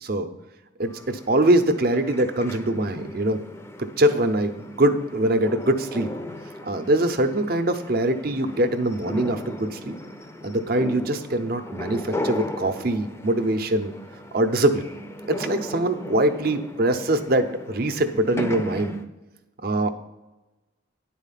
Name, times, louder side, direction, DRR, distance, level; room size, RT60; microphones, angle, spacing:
voice 1, 0.8-3.4 3.8-6.1 6.6-10.0 10.4-13.9 14.3-14.8 15.3-18.9 19.6-19.9, right 1 dB, 50° right, 9 dB, 0.6 m, -23 dB
sound 1, 0.9-19.0, left 1 dB, 15° left, 0.5 m, -37 dB
9.8 x 4.2 x 5.7 m, 1.1 s
head